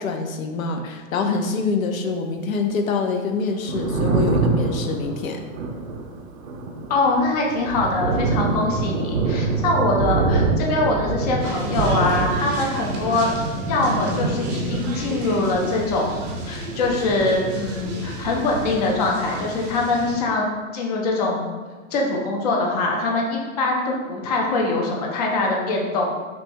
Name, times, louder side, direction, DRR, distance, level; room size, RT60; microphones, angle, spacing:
voice 1, 0.0-5.4, left 4 dB, 75° left, 4 dB, 0.7 m, -25 dB
Thunder, 3.5-17.9 18.2-19.4, right 3 dB, 80° right, 0.8 m, -26 dB
voice 2, 6.9-13.3 13.7-20.5 20.7-21.5 21.9-26.1, left 2 dB, 30° left, -1 dB, 0.5 m, -23 dB
sound 1, 11.4-20.1, right 2 dB, 25° right, 0.6 m, -30 dB
6.0 x 2.3 x 2.6 m, 1.3 s
hypercardioid pair, 155°, 41 cm